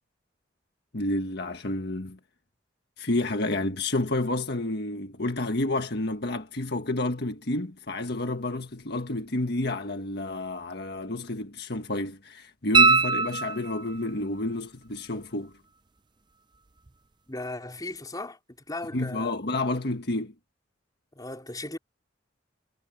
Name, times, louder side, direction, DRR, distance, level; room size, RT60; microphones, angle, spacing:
voice 1, 0.9-2.2 3.0-15.5 18.9-20.3, left 2 dB, 60° left, 1.6 m, -30 dB
sound 1, 12.7-14.1 16.9-17.0, right 4 dB, 25° right, 0.6 m, -21 dB
voice 2, 17.3-18.4 18.7-19.3 21.2-21.8, left 2 dB, 20° left, 4.1 m, -36 dB
head